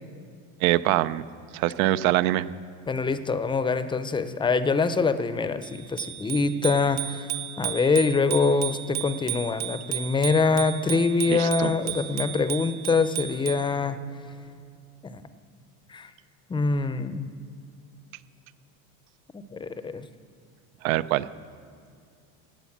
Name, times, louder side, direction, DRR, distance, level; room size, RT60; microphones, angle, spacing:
voice 1, 0.6-1.2 1.5-2.5 11.3-11.7 20.8-21.2, right 15 dB, 80° right, 16 dB, 0.7 m, -23 dB
voice 2, 2.9-7.3 7.6-14.0 15.0-15.2 15.9-16.1 16.5-17.3 19.5-20.1, left 4 dB, 10° left, 12 dB, 0.5 m, -24 dB
Bicycle bell, 5.6-13.7, right 12 dB, 40° right, 0.9 m, -34 dB
16.5 x 9.2 x 7.2 m, 2.3 s
supercardioid pair, 120°, 42 cm